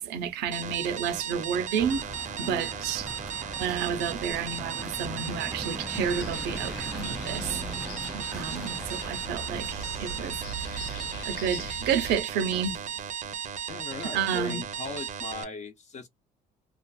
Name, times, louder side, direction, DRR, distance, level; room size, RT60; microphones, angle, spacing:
voice 1, 0.0-3.1 3.6-7.6 8.1-11.0 11.2-12.8 14.1-14.6, right 7 dB, 90° right, 0.7 m, -31 dB
sound 1, 0.5-15.4, right 8 dB, 45° right, 0.6 m, -36 dB
sound 2, 1.8-11.3, right 1 dB, 5° right, 0.3 m, -41 dB
sound 3, 5.9-12.1, equal, 75° left, 0.7 m, -40 dB
voice 2, 13.7-16.1, left 5 dB, 45° left, 0.8 m, -38 dB
2.4 x 2.4 x 2.3 m
cardioid pair, 110°, 17 cm